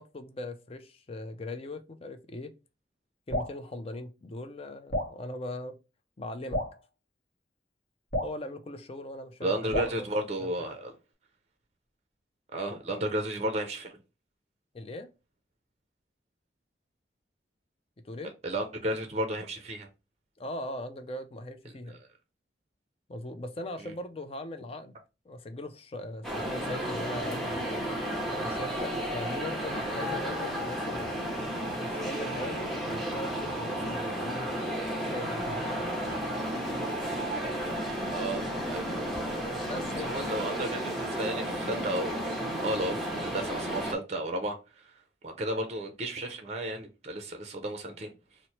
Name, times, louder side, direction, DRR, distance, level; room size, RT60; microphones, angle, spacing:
voice 1, 0.0-2.5 3.3-5.8 6.2-6.6 8.2-10.1 10.4-10.7 14.7-15.1 18.0-18.3 20.4-22.0 23.1-25.0 25.3-27.8 28.2-31.4 31.8-34.5 35.0-35.7 39.7-40.2, left 1 dB, 35° left, 0.4 m, -40 dB
Drip, 3.3-3.6 4.9-5.2 6.5-6.8 8.1-8.4 9.7-10.0, left 1 dB, 50° left, 0.9 m, -31 dB
voice 2, 9.4-10.9 12.5-14.0 18.4-19.9 23.8-23.9 38.1-38.9 40.0-44.9 45.2-48.1, right 1 dB, 35° right, 0.5 m, -33 dB
sound 1, 26.2-43.9, equal, ahead, 0.7 m, -33 dB
3.0 x 2.0 x 4.1 m
head